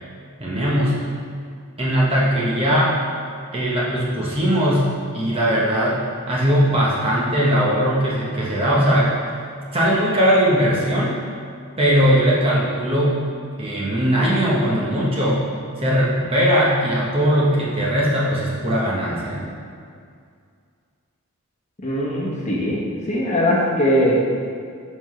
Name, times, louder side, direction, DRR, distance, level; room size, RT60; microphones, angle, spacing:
voice 1, 0.4-1.0 1.8-3.0 3.5-9.1 9.7-11.2 11.8-13.2 13.6-15.4 15.8-19.5, equal, 25° right, -5 dB, 0.9 m, -19 dB
voice 2, 21.8-22.8 23.1-24.2, equal, 30° left, -5 dB, 1.1 m, -20 dB
6.9 x 5.4 x 3.1 m, 2.2 s
head